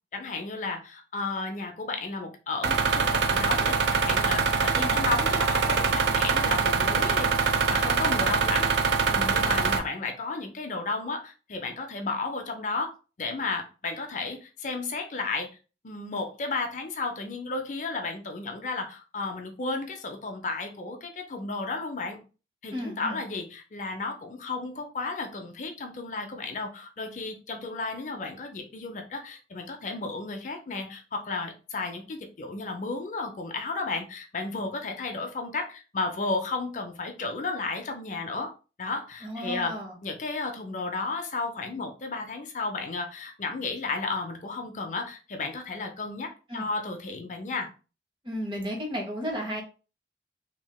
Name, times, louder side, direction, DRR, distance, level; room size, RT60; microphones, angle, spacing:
voice 1, 0.1-12.9 13.2-15.5 15.8-22.2 22.6-38.5 38.8-39.8 40.0-47.7, left 3 dB, 45° left, 4 dB, 0.5 m, -33 dB
sound 1, 2.6-9.8, right 5 dB, 80° right, 0.5 m, -24 dB
voice 2, 22.7-23.2 39.2-40.0 46.5-46.6 48.2-49.6, equal, 30° right, 1 dB, 0.8 m, -33 dB
3.2 x 2.8 x 2.2 m, 0.34 s
head